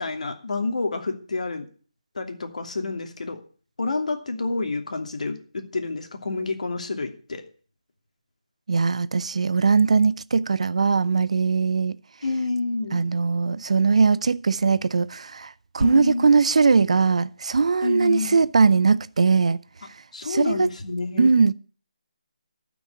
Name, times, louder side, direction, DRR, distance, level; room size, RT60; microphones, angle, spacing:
voice 1, 0.0-1.7 2.1-3.4 3.8-7.4 12.2-13.0 15.8-16.3 17.8-18.4 20.1-21.3, left 3 dB, 65° left, 2.8 m, -28 dB
voice 2, 8.7-12.0 12.9-19.6 20.2-20.7 21.2-21.5, right 5 dB, 60° right, 0.7 m, -20 dB
12.5 x 6.2 x 9.7 m
hypercardioid pair, 170°, 4 cm